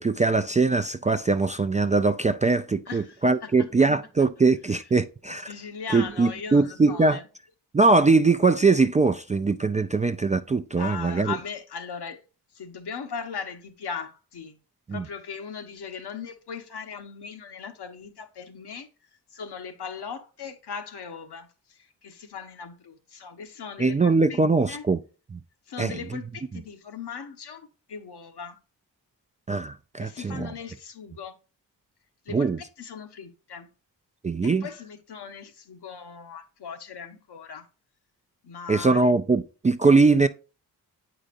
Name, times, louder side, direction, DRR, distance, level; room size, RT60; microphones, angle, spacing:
voice 1, 0.0-5.5 5.9-7.2 7.7-11.3 14.9-15.0 23.8-25.0 25.3-25.4 25.8-26.0 29.5-30.5 32.3-32.6 34.2-34.7 38.7-40.3, right 3 dB, 20° right, 0.3 m, -21 dB
voice 2, 2.9-3.5 5.5-7.2 10.8-12.2 12.5-14.6 14.9-18.9 19.3-24.4 24.7-24.9 25.7-28.6 30.0-31.4 32.2-33.7 34.4-37.7 38.4-39.1, left 6 dB, 65° left, 1.0 m, -38 dB
8.0 x 5.0 x 2.5 m
cardioid pair, 50°, 42 cm